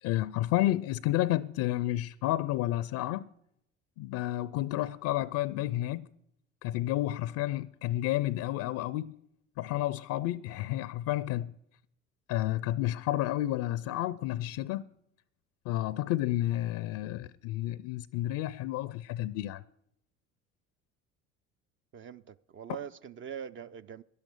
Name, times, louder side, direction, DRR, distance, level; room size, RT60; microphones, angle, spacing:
voice 1, 0.0-3.3 4.0-6.0 6.6-9.1 9.6-11.5 12.3-14.8 15.7-19.6, left 14 dB, 65° left, 0.5 m, -31 dB
voice 2, 21.9-24.0, right 8 dB, 40° right, 0.4 m, -42 dB
12.0 x 10.5 x 6.6 m
hypercardioid pair, 65°, 33 cm